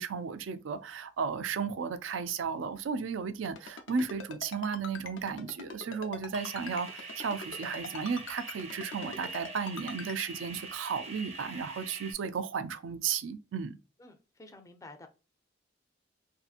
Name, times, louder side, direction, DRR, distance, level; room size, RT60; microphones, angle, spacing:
voice 1, 0.0-13.8, right 6 dB, 90° right, 0.4 m, -34 dB
Ringtone, 3.4-10.3, left 4 dB, 85° left, 0.5 m, -42 dB
sound 1, 6.3-12.1, right 3 dB, 35° right, 0.6 m, -44 dB
voice 2, 14.0-15.1, left 2 dB, 15° left, 0.4 m, -51 dB
2.7 x 2.5 x 2.3 m
head